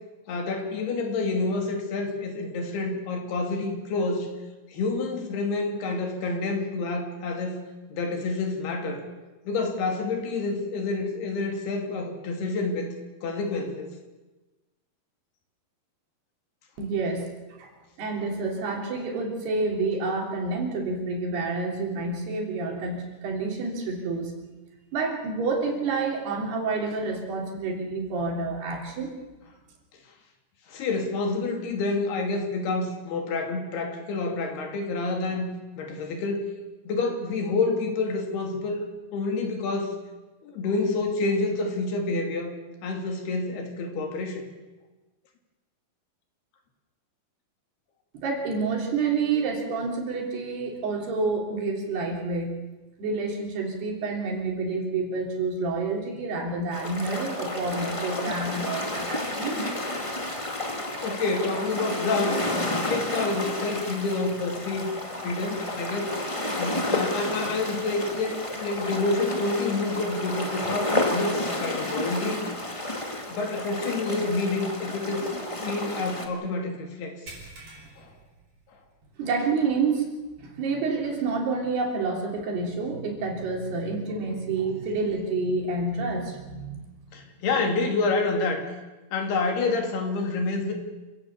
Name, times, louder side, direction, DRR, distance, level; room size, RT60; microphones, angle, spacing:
voice 1, 0.3-4.3 4.7-7.6 7.9-9.0 9.5-12.9 13.2-13.9 30.7-36.5 36.9-38.9 39.1-40.0 40.4-42.5 42.8-44.4 61.0-62.4 62.9-64.9 65.2-66.1 66.6-72.4 72.9-73.0 73.3-75.3 75.5-77.2 78.0-78.1 87.1-88.6 89.1-90.7, left 3 dB, 80° left, 3 dB, 4.7 m, -28 dB
voice 2, 16.8-17.3 17.6-17.7 18.0-24.4 24.9-29.1 48.1-52.6 53.0-59.6 79.2-80.1 80.4-86.9, right 3 dB, 85° right, 0 dB, 5.4 m, -28 dB
sound 1, 56.7-76.3, left 1 dB, 30° left, 0.5 m, -31 dB
sound 2, 77.3-79.1 79.5-79.7 80.2-80.3 81.9-82.0, right 2 dB, 45° right, 5.9 m, -47 dB
27.5 x 16.5 x 7.2 m, 1.1 s
omnidirectional pair, 4.5 m